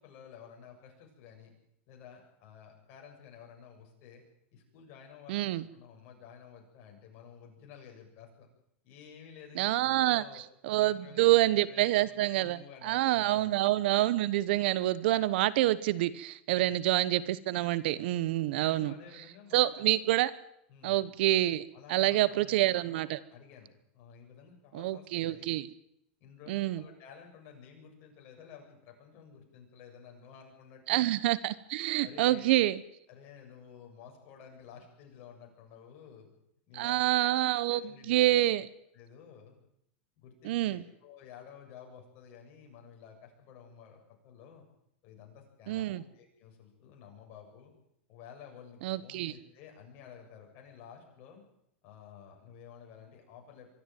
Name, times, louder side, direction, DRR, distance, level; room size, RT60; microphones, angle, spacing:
voice 1, 0.0-1.5 1.9-4.2 4.5-8.5 8.8-10.4 10.7-13.5 16.5-16.8 18.6-19.9 20.7-21.0 21.7-23.7 23.9-25.5 26.2-31.1 32.0-32.6 33.1-36.3 36.7-37.4 37.6-38.4 38.9-39.5 40.2-44.7 45.0-47.7 48.1-51.4 51.8-53.7, left 7 dB, 45° left, 2 dB, 7.3 m, -52 dB
voice 2, 5.3-5.6 9.6-18.9 19.5-20.3 20.8-21.6 21.9-23.2 24.7-25.7 26.5-26.8 30.9-32.8 36.7-38.7 40.4-40.8 45.7-46.0 48.8-49.3, right 15 dB, 60° right, 18 dB, 1.1 m, -27 dB
23.5 x 13.0 x 9.4 m, 0.76 s
supercardioid pair, 135°, 6 cm